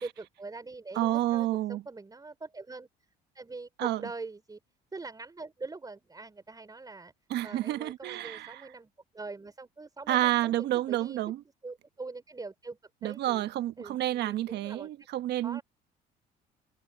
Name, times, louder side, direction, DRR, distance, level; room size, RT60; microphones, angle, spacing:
voice 1, 0.0-2.9 3.3-4.6 4.9-7.1 7.4-11.2 11.6-13.4 13.8-14.9 15.4-15.6, right 3 dB, 20° right, 4.5 m, -43 dB
voice 2, 0.9-1.8 3.8-4.0 7.3-8.6 10.1-11.4 13.0-15.6, right 14 dB, 70° right, 1.3 m, -29 dB
supercardioid pair, 85°, 18 cm